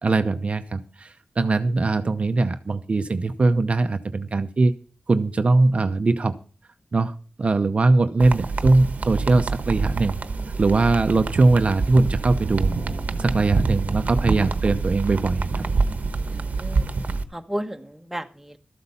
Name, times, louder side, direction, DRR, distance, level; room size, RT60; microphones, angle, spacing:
voice 1, 0.0-4.7 5.1-6.3 6.9-10.2 10.6-12.7 13.2-15.6, right 3 dB, 50° right, 9 dB, 0.7 m, -21 dB
sound 1, 8.2-17.2, right 4 dB, 75° right, 1.0 m, -26 dB
voice 2, 16.3-16.9 17.3-18.6, equal, 10° right, 6 dB, 1.2 m, -33 dB
13.0 x 8.1 x 5.6 m, 0.39 s
wide cardioid pair, 85°, 3 cm